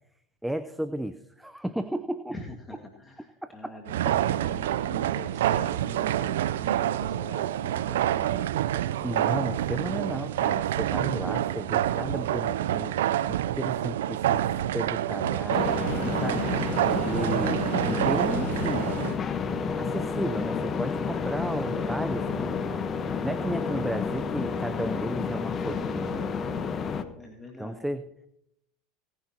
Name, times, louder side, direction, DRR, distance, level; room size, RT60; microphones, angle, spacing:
voice 1, 0.4-2.4 3.4-3.8 4.0-4.1 9.0-13.0 13.3-16.7 17.0-19.0 19.3-22.9 23.2-26.3 27.6-28.0, right 1 dB, 5° right, 11 dB, 0.6 m, -34 dB
voice 2, 2.3-8.5 8.9-9.3 27.2-27.9, left 2 dB, 15° left, 2 dB, 1.8 m, -45 dB
sound 1, 3.9-19.2, right 12 dB, 75° right, 0.5 m, -27 dB
sound 2, 15.5-27.0, left 5 dB, 35° left, 1.1 m, -30 dB
19.0 x 10.5 x 2.9 m, 0.76 s
hypercardioid pair, 85°, 0 cm